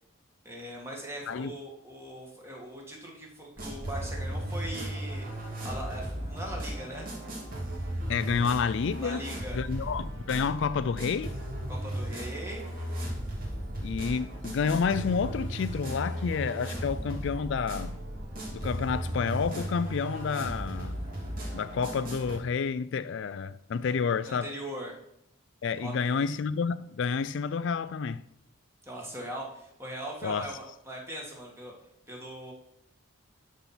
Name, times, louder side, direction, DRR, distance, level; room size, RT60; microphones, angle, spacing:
voice 1, 0.4-5.3 5.6-7.1 9.0-9.6 11.7-12.7 24.2-24.9 25.8-26.2 28.9-31.7 32.1-32.5, right 1 dB, 10° right, 2.1 m, -40 dB
sound 1, 3.6-22.4, right 1 dB, 45° right, 2.7 m, -36 dB
voice 2, 8.1-9.2 9.5-11.4 13.8-18.0 18.5-21.0 21.5-24.5 25.6-28.2 30.2-30.5, left 5 dB, 60° left, 0.3 m, -29 dB
12.5 x 4.3 x 5.9 m
head